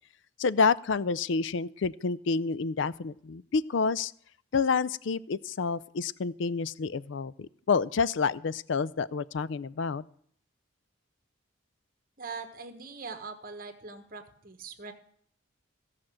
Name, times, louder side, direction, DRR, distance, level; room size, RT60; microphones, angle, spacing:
voice 1, 0.4-4.1 4.5-10.0, left 5 dB, 65° left, 18 dB, 0.4 m, -28 dB
voice 2, 12.2-14.9, right 4 dB, 45° right, 7 dB, 1.2 m, -42 dB
16.0 x 5.9 x 7.6 m, 0.64 s
head